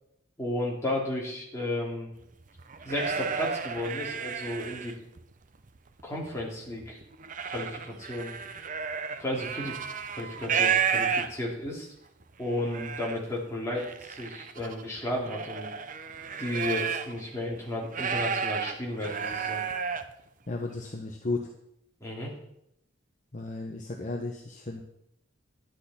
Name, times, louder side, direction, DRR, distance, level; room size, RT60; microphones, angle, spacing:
voice 1, 0.4-2.1 2.8-5.0 6.0-7.0 7.5-8.3 9.2-9.8 10.1-11.9 12.4-15.7 16.4-19.6 22.0-22.3, left 1 dB, 15° left, -3 dB, 2.6 m, -33 dB
sound 1, 2.4-5.2 5.7-6.4 6.8-11.7 12.2-12.3 12.5-13.2 13.8-17.2 17.5-20.1, right 6 dB, 40° right, 0.6 m, -32 dB
voice 2, 20.5-21.5 23.3-24.8, left 2 dB, 35° left, 1 dB, 0.9 m, -34 dB
10.5 x 10.5 x 4.2 m, 0.78 s
head